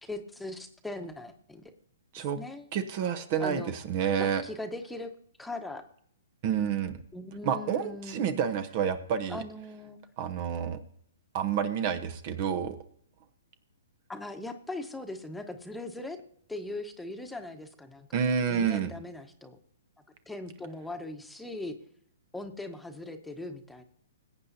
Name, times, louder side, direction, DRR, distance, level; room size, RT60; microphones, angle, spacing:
voice 1, 0.0-1.7 2.2-2.7 3.4-3.7 4.2-5.1 5.4-5.8 7.1-8.4 9.3-10.0 14.1-16.2 16.5-19.6 20.3-21.8 22.3-23.8, left 2 dB, 5° left, 5 dB, 1.2 m, -40 dB
voice 2, 2.7-4.4 6.4-7.0 7.4-9.4 10.2-10.8 11.3-12.8 18.1-18.9, right 7 dB, 45° right, 11 dB, 1.0 m, -29 dB
21.0 x 8.7 x 2.8 m, 0.62 s
hypercardioid pair, 125°, 0 cm